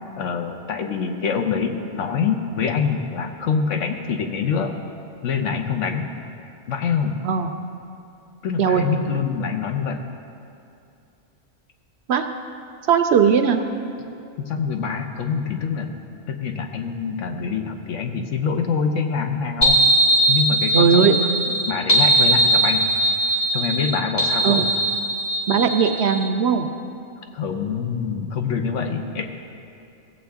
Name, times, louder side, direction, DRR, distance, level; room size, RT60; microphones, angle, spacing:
voice 1, 0.2-4.8 5.2-6.1 6.7-7.1 8.4-10.0 14.4-19.8 20.3-21.3 21.7-22.8 23.5-24.6 27.3-29.3, left 6 dB, 75° left, 5 dB, 1.1 m, -25 dB
voice 2, 12.9-13.6 20.7-21.2 24.4-24.7 25.5-26.7, right 6 dB, 65° right, 7 dB, 0.8 m, -18 dB
sound 1, 19.6-26.3, right 1 dB, 35° left, 1.2 m, -20 dB
16.5 x 7.6 x 3.5 m, 2.6 s
omnidirectional pair, 1.3 m